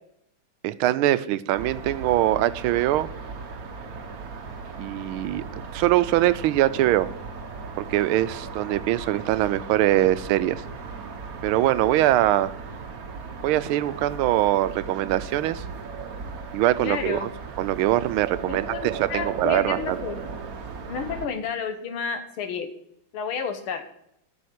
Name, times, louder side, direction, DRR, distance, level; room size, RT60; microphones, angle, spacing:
voice 1, 0.6-3.1 4.8-5.4 5.7-7.1 7.8-10.6 11.4-12.5 13.4-15.6 16.5-17.3 17.6-20.0, right 14 dB, 90° right, 15 dB, 1.4 m, -22 dB
sound 1, 1.5-21.3, right 4 dB, 50° right, 1.3 m, -37 dB
voice 2, 16.8-17.3 18.5-20.4 20.9-22.7 23.1-23.8, left 6 dB, 85° left, 7 dB, 2.0 m, -31 dB
8.6 x 6.3 x 8.2 m, 0.75 s
omnidirectional pair, 2.3 m